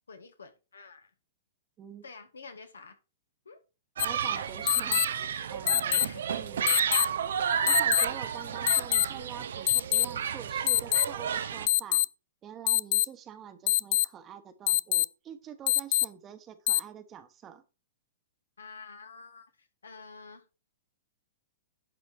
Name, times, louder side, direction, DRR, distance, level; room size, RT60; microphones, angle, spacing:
voice 1, 0.1-1.1 2.0-3.0 3.5-3.6 6.0-6.3 6.9-7.1 18.6-19.5 19.8-20.4, left 4 dB, 80° left, 1.7 m, -48 dB
sound 1, 4.0-4.1 4.7-5.1 5.7-6.1 6.7-7.1 7.7-8.1 8.7-9.1 9.7-10.1 10.7-11.0 11.7-12.0 12.7-13.0 13.7-14.0 14.7-15.0 15.7-16.0 16.7-16.8, left 14 dB, 55° left, 0.3 m, -24 dB
voice 2, 4.0-5.2 5.5-6.8 7.7-12.0 12.4-17.6, right 9 dB, 25° right, 1.2 m, -46 dB
Human group actions, 4.0-11.7, right 8 dB, 70° right, 0.8 m, -31 dB
11.0 x 4.2 x 4.8 m
hypercardioid pair, 115°, 0 cm